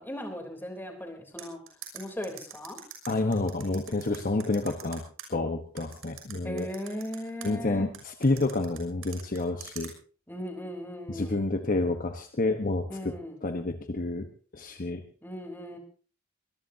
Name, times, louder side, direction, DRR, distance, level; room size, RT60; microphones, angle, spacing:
voice 1, 0.0-1.6 1.9-2.8 6.4-7.9 10.3-11.5 12.9-13.4 15.2-15.8, equal, 10° left, 3 dB, 3.5 m, -38 dB
sound 1, 1.4-5.3 5.8-7.5 7.9-9.9, right 9 dB, 85° right, 6.3 m, -43 dB
voice 2, 3.1-5.0 5.3-6.7 7.4-9.9 11.1-13.1 13.4-14.3 14.5-15.0, left 2 dB, 40° left, 6 dB, 1.2 m, -29 dB
23.0 x 20.5 x 2.8 m, 0.39 s
head